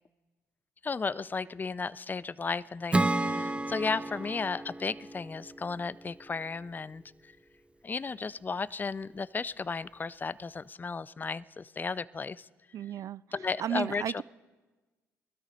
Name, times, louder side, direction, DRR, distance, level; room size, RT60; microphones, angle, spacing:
voice 1, 0.8-7.3 7.8-12.5 13.3-14.2, left 4 dB, 30° left, 20 dB, 0.5 m, -34 dB
Acoustic guitar / Strum, 2.9-6.4, right 2 dB, 15° right, 0.9 m, -32 dB
voice 2, 12.7-13.2 13.6-14.2, right 10 dB, 55° right, 20 dB, 0.4 m, -33 dB
20.5 x 13.0 x 5.3 m, 1.3 s
hypercardioid pair, 55°, 7 cm